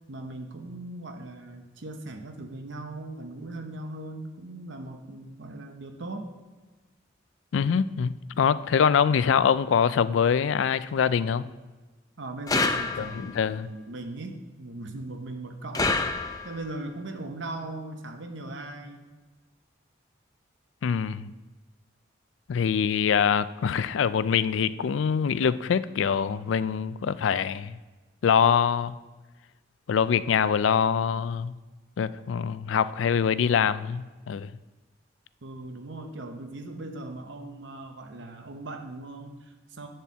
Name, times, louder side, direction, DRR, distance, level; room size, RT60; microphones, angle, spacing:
voice 1, 0.1-6.3 12.2-19.1 35.4-39.9, right 2 dB, 75° right, 0.8 m, -39 dB
voice 2, 7.5-11.5 13.0-13.7 20.8-21.3 22.5-27.8 28.2-29.0 29.9-31.6 32.0-34.5, left 7 dB, 80° left, 0.4 m, -24 dB
sound 1, 12.5-13.4 15.7-16.7, left 3 dB, 20° left, 0.5 m, -27 dB
10.5 x 4.4 x 7.3 m
head